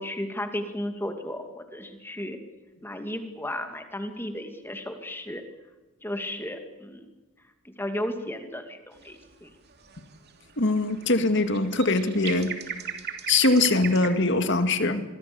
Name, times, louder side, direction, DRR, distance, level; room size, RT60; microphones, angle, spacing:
voice 1, 0.0-2.4 2.8-5.4 6.0-7.1 7.6-9.5, left 1 dB, 10° left, 6 dB, 2.5 m, -34 dB
sound 1, 9.0-9.3 9.7-14.5, right 7 dB, 50° right, 2.9 m, -38 dB
voice 2, 10.6-12.5 13.3-15.0, left 2 dB, 55° left, 8 dB, 2.1 m, -22 dB
26.5 x 23.0 x 7.1 m, 1.2 s
head